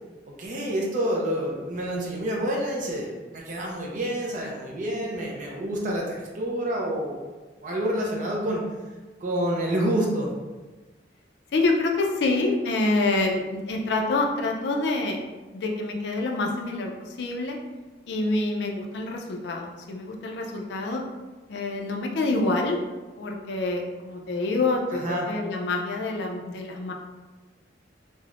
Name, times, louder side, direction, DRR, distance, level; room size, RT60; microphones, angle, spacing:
voice 1, 0.4-7.2 7.6-8.6 9.2-10.3 25.0-25.2, right 1 dB, 45° right, -2 dB, 0.4 m, -28 dB
voice 2, 11.5-15.2 15.5-17.6 18.1-21.0 21.5-22.8 23.2-26.9, left 2 dB, 70° left, 2 dB, 0.4 m, -26 dB
3.3 x 2.0 x 2.4 m, 1.2 s
head